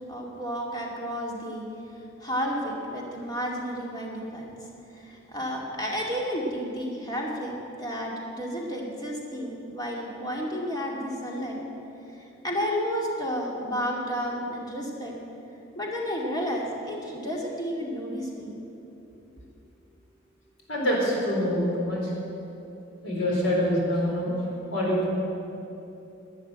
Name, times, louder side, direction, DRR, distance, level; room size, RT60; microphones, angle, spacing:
voice 1, 0.1-1.7 2.2-4.5 4.9-11.6 12.1-15.2 15.8-18.6, equal, 20° left, -2 dB, 2.5 m, -31 dB
voice 2, 20.7-22.1 23.0-25.1, equal, 75° left, -3 dB, 4.2 m, -25 dB
12.0 x 10.0 x 9.0 m, 2.9 s
head